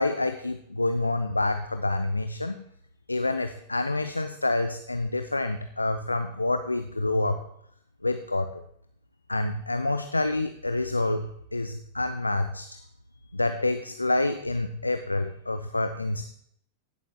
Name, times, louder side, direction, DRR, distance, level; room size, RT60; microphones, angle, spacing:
voice 1, 0.0-2.6 3.1-7.4 8.0-8.6 9.3-12.7 13.3-16.2, left 2 dB, 85° left, 9 dB, 0.4 m, -27 dB
16.0 x 7.2 x 2.3 m, 0.71 s
figure-of-eight pair, 90°, 0 cm